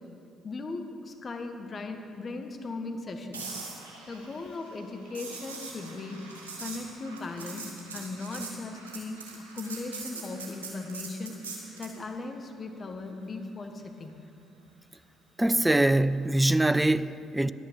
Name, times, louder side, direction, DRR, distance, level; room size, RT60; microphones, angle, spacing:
voice 1, 0.4-3.6 4.1-6.3 6.6-11.4 11.8-14.2, left 3 dB, 40° left, 1.3 m, -38 dB
sound 1, 3.3-12.0 16.2-16.4, right 4 dB, 85° right, 1.4 m, -42 dB
voice 2, 15.4-17.5, right 1 dB, 10° right, 0.4 m, -23 dB
11.0 x 8.6 x 6.8 m
hypercardioid pair, 45°, 0 cm